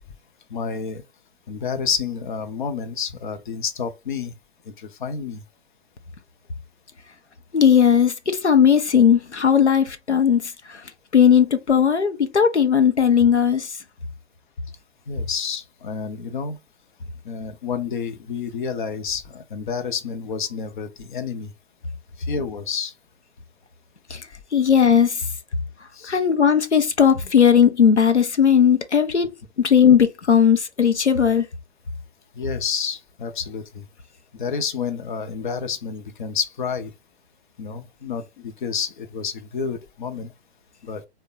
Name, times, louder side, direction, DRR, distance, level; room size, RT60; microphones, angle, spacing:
voice 1, 0.5-1.0 1.5-4.3 4.7-5.4 15.1-16.6 17.2-21.5 22.2-22.9 25.9-26.2 32.3-33.9 34.3-36.9 37.6-40.3 40.8-41.0, left 6 dB, 45° left, 0.7 m, -29 dB
voice 2, 7.5-10.8 11.1-13.7 24.1-24.2 24.5-25.2 26.1-29.3 29.6-31.5, left 7 dB, 85° left, 0.7 m, -17 dB
3.4 x 2.2 x 3.8 m
figure-of-eight pair, 120°, 33 cm